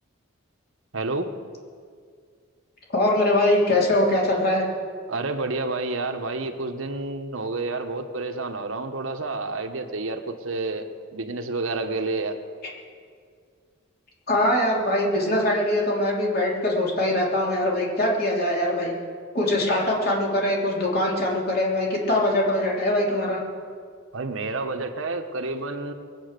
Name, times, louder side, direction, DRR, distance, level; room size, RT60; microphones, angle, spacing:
voice 1, 0.9-1.3 5.1-12.4 24.1-25.9, right 3 dB, 75° right, 6 dB, 1.2 m, -29 dB
voice 2, 2.9-4.6 14.3-19.0 19.3-23.4, left 1 dB, 50° left, -3 dB, 3.2 m, -22 dB
21.5 x 8.6 x 6.7 m, 2.1 s
head